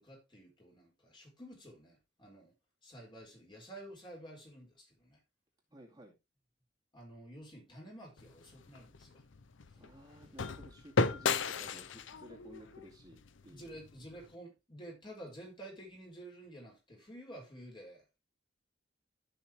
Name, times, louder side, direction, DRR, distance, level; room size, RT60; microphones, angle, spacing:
voice 1, 0.0-2.5 2.8-5.2 6.9-9.2 13.5-18.2, right 1 dB, 25° left, 4.6 m, -51 dB
voice 2, 5.7-6.1 9.7-13.8, right 1 dB, 20° right, 2.3 m, -55 dB
sound 1, 8.2-14.3, left 4 dB, 80° left, 0.7 m, -36 dB
14.5 x 5.9 x 3.1 m
head